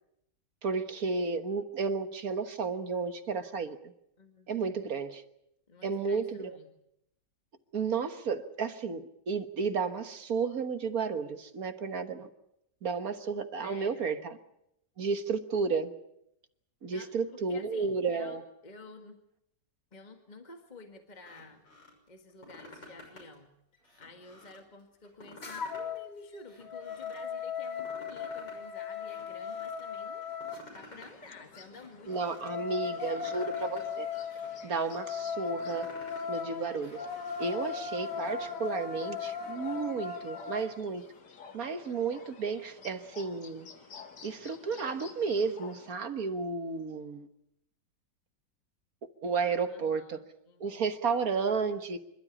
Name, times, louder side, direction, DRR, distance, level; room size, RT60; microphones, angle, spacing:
voice 1, 0.6-3.8 4.5-5.2 5.8-6.6 7.7-12.3 12.8-14.4 15.0-15.9 16.8-18.4 32.1-34.1 34.6-35.9 36.3-37.0 37.4-41.0 41.5-43.7 44.2-47.3 49.2-50.2 50.6-52.0, right 5 dB, 55° right, 9 dB, 1.7 m, -32 dB
voice 2, 4.2-4.9 5.7-6.7 13.6-14.2 16.9-19.2 19.9-21.6 22.1-23.5 24.0-30.3 30.7-32.4 32.8-33.7 49.7-50.8, left 3 dB, 25° left, 4 dB, 1.8 m, -51 dB
sound 1, 21.1-21.9 22.3-23.3 23.7-24.6 25.0-26.0 26.3-27.2 27.6-28.6 28.9-29.8 30.2-31.2 31.5-32.5 32.9-33.8 34.1-35.0 35.4-36.3 36.7-38.3, left 2 dB, 85° left, 6.8 m, -52 dB
sound 2, 25.4-26.0 26.4-30.6 32.1-40.7, left 6 dB, 50° left, 2.8 m, -37 dB
sound 3, 30.7-45.9, left 5 dB, 70° left, 2.3 m, -53 dB
26.5 x 13.0 x 9.9 m, 0.80 s
omnidirectional pair, 1.9 m